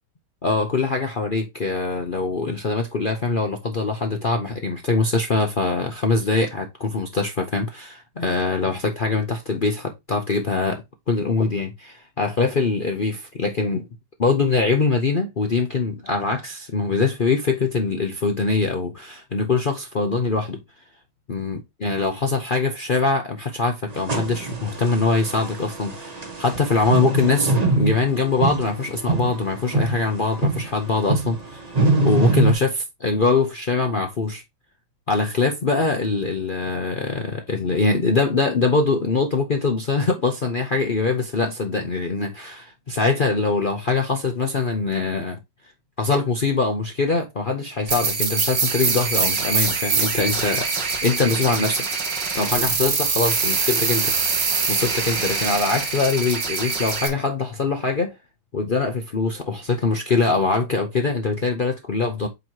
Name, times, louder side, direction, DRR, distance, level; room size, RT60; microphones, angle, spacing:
voice 1, 0.4-13.9 14.2-20.6 21.3-34.4 35.1-45.4 46.0-51.8 52.3-54.1 54.7-58.1 58.5-62.3, left 4 dB, 85° left, 0.4 m, -23 dB
sound 1, 23.9-32.5, right 2 dB, 30° right, 0.7 m, -24 dB
sound 2, 47.9-57.1, right 5 dB, 60° right, 2.2 m, -24 dB
8.3 x 3.0 x 4.5 m
omnidirectional pair, 2.2 m